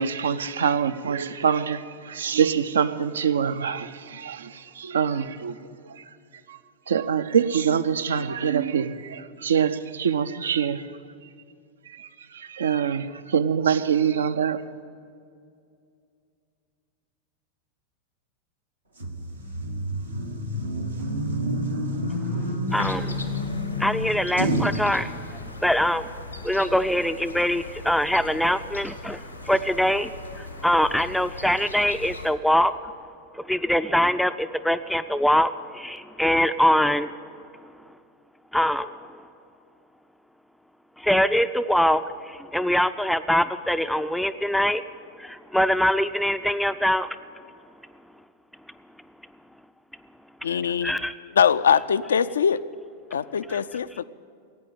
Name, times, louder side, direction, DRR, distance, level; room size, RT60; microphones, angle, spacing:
voice 1, 0.0-5.6 5.8-6.0 6.5-6.6 6.9-10.9 11.9-14.6, right 7 dB, 65° right, 0.5 m, -25 dB
sound 1, 19.0-24.8, equal, 80° right, 1.3 m, -28 dB
sound 2, 22.7-32.3, left 2 dB, 90° left, 1.2 m, -39 dB
voice 2, 22.7-23.1 23.8-25.1 25.6-26.1 26.4-29.2 29.5-32.7 33.4-37.1 38.5-38.9 41.0-44.8 45.2-47.1 50.8-51.1 53.5-53.6, equal, ahead, 0.4 m, -23 dB
voice 3, 50.4-50.9 51.3-52.6 53.1-54.0, left 7 dB, 65° left, 0.4 m, -22 dB
16.5 x 9.1 x 9.1 m
figure-of-eight pair, 90°, 0 cm